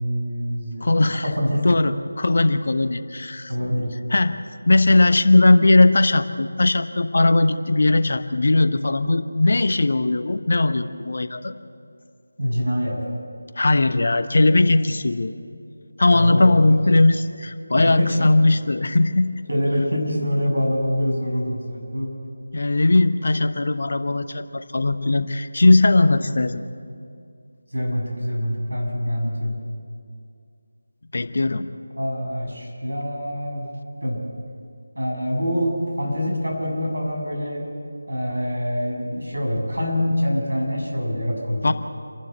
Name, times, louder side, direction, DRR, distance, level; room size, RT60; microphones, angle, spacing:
voice 1, 0.0-0.8 1.2-1.7 3.5-3.9 12.4-13.0 16.1-16.6 17.8-18.2 19.5-22.1 27.7-29.5 32.0-33.7 34.0-34.2 35.0-37.7 38.1-41.7, equal, 80° right, 0 dB, 7.2 m, -25 dB
voice 2, 0.8-1.2 1.6-3.5 4.1-4.3 4.7-11.5 13.6-15.3 16.0-19.3 22.5-26.6 31.1-31.7 41.6-41.7, left 2 dB, 50° left, 10 dB, 1.0 m, -18 dB
28.5 x 12.0 x 7.9 m, 2.3 s
figure-of-eight pair, 165°, 0 cm